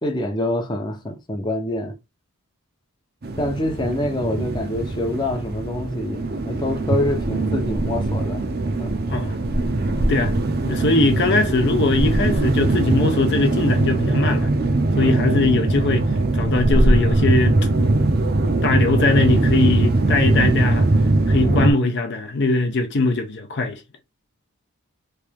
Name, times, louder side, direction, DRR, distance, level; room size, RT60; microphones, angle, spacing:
voice 1, 0.0-2.0 3.4-8.9 15.1-15.2 21.4-21.6, left 1 dB, 20° left, 0.7 m, -26 dB
sound 1, 3.2-21.7, right 2 dB, 45° right, 0.6 m, -21 dB
voice 2, 10.6-14.5 15.0-16.1 16.3-17.6 18.6-20.9 21.3-23.8, left 3 dB, 50° left, 0.6 m, -21 dB
3.3 x 2.8 x 3.4 m
head